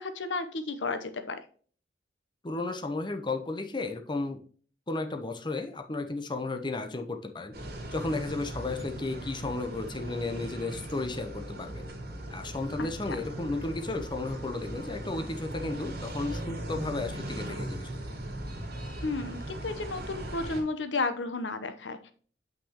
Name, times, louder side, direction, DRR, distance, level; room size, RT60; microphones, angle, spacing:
voice 1, 0.0-1.4 12.8-12.9 19.0-22.1, left 3 dB, 75° left, 9 dB, 0.9 m, -33 dB
voice 2, 2.4-4.4 4.9-7.5 7.9-11.8 12.3-17.9, left 2 dB, 25° left, 5 dB, 0.8 m, -33 dB
sound 1, 7.5-20.6, right 1 dB, 55° right, 2.6 m, -39 dB
7.8 x 5.9 x 2.9 m, 0.43 s
head